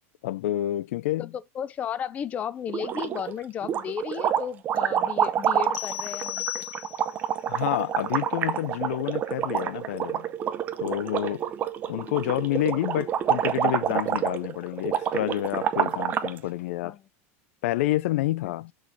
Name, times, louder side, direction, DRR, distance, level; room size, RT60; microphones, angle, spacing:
voice 1, 0.2-1.3 7.5-10.3 10.8-11.5 11.9-17.0 17.6-18.7, left 15 dB, 80° left, 0.4 m, -28 dB
voice 2, 1.2-6.6 16.8-17.0 18.4-18.5, left 8 dB, 20° left, 0.4 m, -34 dB
sound 1, 2.7-3.3 3.6-16.4, right 9 dB, 25° right, 0.6 m, -28 dB
sound 2, 5.7-7.3, left 15 dB, 45° left, 0.8 m, -35 dB
6.3 x 3.2 x 5.9 m
supercardioid pair, 170°, 7 cm